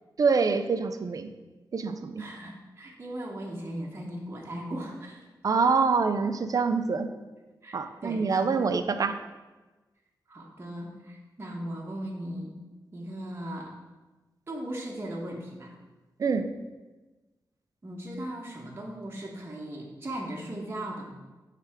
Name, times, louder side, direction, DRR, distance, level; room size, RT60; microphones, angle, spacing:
voice 1, 0.2-1.3 1.7-2.2 5.4-7.1 7.7-9.2 16.2-16.5, right 5 dB, 50° right, 9 dB, 0.4 m, -25 dB
voice 2, 2.2-5.3 7.6-8.7 10.3-12.6 12.9-13.7 14.5-15.7 17.8-21.1, right 1 dB, 30° right, -2 dB, 1.0 m, -38 dB
6.0 x 3.3 x 4.8 m, 1.2 s
wide cardioid pair, 115°, 8 cm